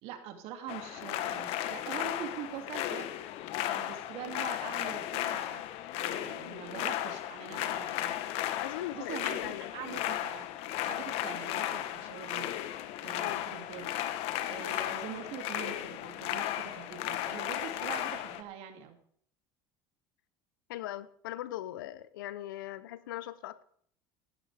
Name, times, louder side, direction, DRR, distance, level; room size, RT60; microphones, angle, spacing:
voice 1, 0.0-3.1 3.6-5.7 5.9-8.1 8.9-10.5 10.8-12.5 13.0-13.9 14.5-19.0, right 9 dB, 65° right, 2.5 m, -44 dB
sound 1, 0.7-18.4, left 13 dB, 65° left, 1.1 m, -35 dB
voice 2, 8.6-9.7 13.2-13.5 20.7-23.6, left 14 dB, 85° left, 0.7 m, -40 dB
15.0 x 13.0 x 3.4 m
supercardioid pair, 90°, 11 cm